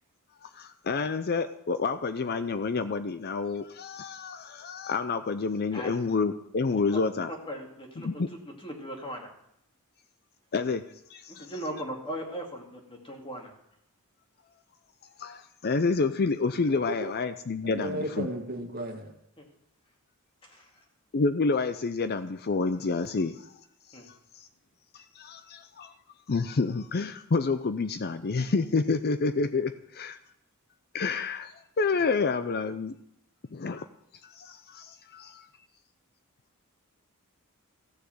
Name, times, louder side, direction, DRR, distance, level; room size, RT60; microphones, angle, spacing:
voice 1, 0.4-7.3 8.0-8.3 10.5-10.8 11.1-11.5 15.2-18.3 21.1-23.5 24.4-24.5 24.9-25.9 26.3-30.2 30.9-33.0 33.5-33.9 34.2-35.5, left 4 dB, 45° left, 11 dB, 0.5 m, -29 dB
voice 2, 7.3-9.3 11.3-13.5 19.4-19.5 20.4-20.8 23.9-24.1, equal, 25° left, 1 dB, 2.4 m, -39 dB
voice 3, 17.6-19.1, equal, 45° right, 3 dB, 1.9 m, -34 dB
15.0 x 6.8 x 7.8 m, 0.75 s
head